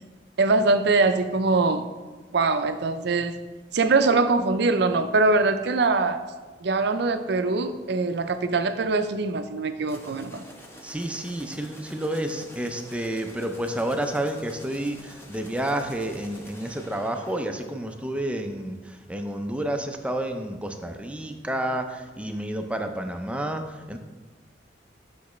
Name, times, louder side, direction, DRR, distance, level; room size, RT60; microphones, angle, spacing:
voice 1, 0.4-1.9 2.3-3.4 3.7-6.2 6.6-10.4, right 3 dB, 60° right, 9 dB, 0.5 m, -22 dB
sound 1, 9.8-18.5, equal, 15° left, 0.8 m, -47 dB
voice 2, 10.8-24.0, right 1 dB, 5° right, 5 dB, 0.4 m, -30 dB
8.2 x 5.9 x 3.1 m, 1.3 s
head